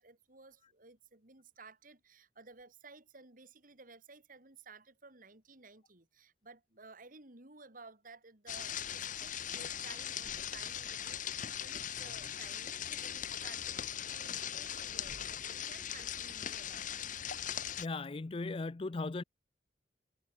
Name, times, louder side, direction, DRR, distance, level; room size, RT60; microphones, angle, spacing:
voice 1, 0.0-17.2, right 4 dB, 50° right, 3.8 m, -56 dB
sound 1, 8.5-17.9, left 9 dB, 50° left, 1.2 m, -40 dB
voice 2, 17.8-19.2, left 3 dB, 30° left, 0.5 m, -37 dB
head